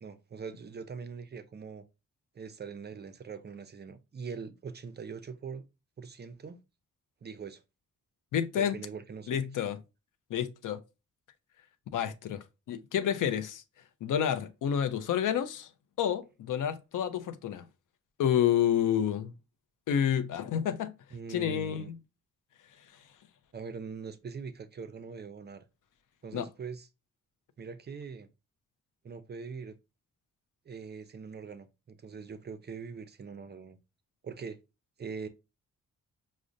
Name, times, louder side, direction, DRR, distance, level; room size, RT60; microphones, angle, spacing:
voice 1, 0.0-1.8 2.3-5.6 6.0-6.6 7.2-7.6 8.6-9.4 21.1-21.9 23.5-25.6 26.2-26.9 27.6-28.3 29.0-29.8 30.7-33.8 34.2-34.6 35.0-35.3, right 5 dB, 35° right, 0.4 m, -42 dB
voice 2, 8.3-8.8 9.3-9.8 10.3-10.8 11.9-13.6 14.0-15.7 16.0-17.6 18.2-19.3 19.9-20.9 21.3-22.0 26.3-26.5, left 9 dB, 75° left, 0.5 m, -29 dB
4.9 x 2.0 x 2.5 m
cardioid pair, 85°, 31 cm